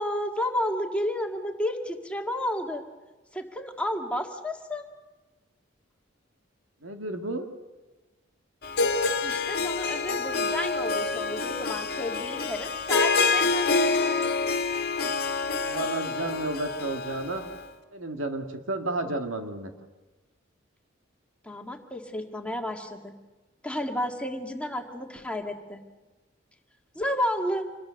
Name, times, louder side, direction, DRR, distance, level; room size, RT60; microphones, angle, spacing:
voice 1, 0.0-2.8 3.3-4.8 9.2-14.4 21.4-23.2 23.6-25.8 27.0-27.6, left 1 dB, 5° left, 2 dB, 1.9 m, -31 dB
voice 2, 6.8-7.5 15.6-17.4 17.9-19.7, right 2 dB, 85° right, 4 dB, 2.2 m, -32 dB
Harp, 8.6-17.6, left 4 dB, 55° left, 1.6 m, -27 dB
27.0 x 21.0 x 6.5 m, 1.2 s
head